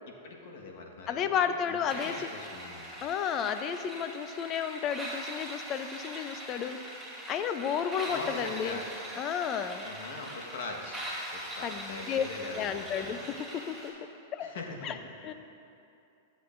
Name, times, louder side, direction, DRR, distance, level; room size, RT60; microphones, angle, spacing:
voice 1, 0.1-1.8 2.0-2.9 8.1-8.8 9.8-13.2 14.4-15.3, left 3 dB, 65° left, 0 dB, 1.3 m, -42 dB
voice 2, 1.1-2.3 3.0-6.8 7.3-8.8 9.2-9.9 11.6-12.2 12.5-14.5 14.8-15.0 15.2-15.3, left 8 dB, 35° left, 9 dB, 0.5 m, -32 dB
sound 1, 1.9-13.9, right 1 dB, ahead, 2.2 m, -42 dB
14.0 x 7.9 x 2.6 m, 2.7 s
hypercardioid pair, 115°, 0 cm